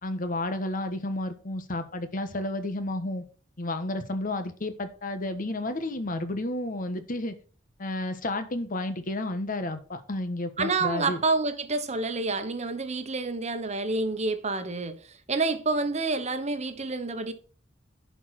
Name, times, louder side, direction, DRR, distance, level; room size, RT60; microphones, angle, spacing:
voice 1, 0.0-3.2 3.6-7.3 7.8-11.2, left 1 dB, 45° left, 1.2 m, -31 dB
voice 2, 10.6-15.0 15.3-17.3, right 3 dB, 35° right, 1.1 m, -28 dB
11.0 x 4.7 x 5.8 m
head